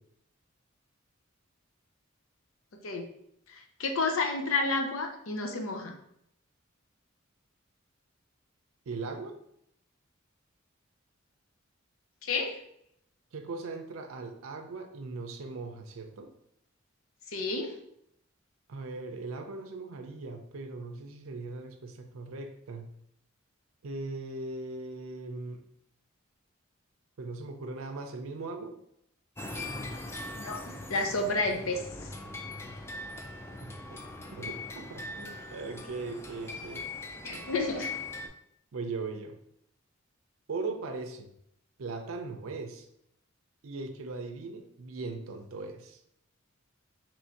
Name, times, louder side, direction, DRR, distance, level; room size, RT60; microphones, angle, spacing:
voice 1, 3.8-6.0 12.2-12.6 17.3-17.7 30.4-31.8 37.2-37.9, left 3 dB, 85° left, 4 dB, 0.6 m, -30 dB
voice 2, 8.9-9.3 13.3-16.3 18.7-22.9 23.8-25.6 27.2-28.7 33.6-33.7 34.3-36.9 38.7-39.4 40.5-41.3 41.8-42.9 43.6-46.0, right 3 dB, 90° right, 5 dB, 0.5 m, -39 dB
sound 1, 29.4-38.3, left 2 dB, 15° left, 0.3 m, -41 dB
3.1 x 2.6 x 4.4 m, 0.75 s
head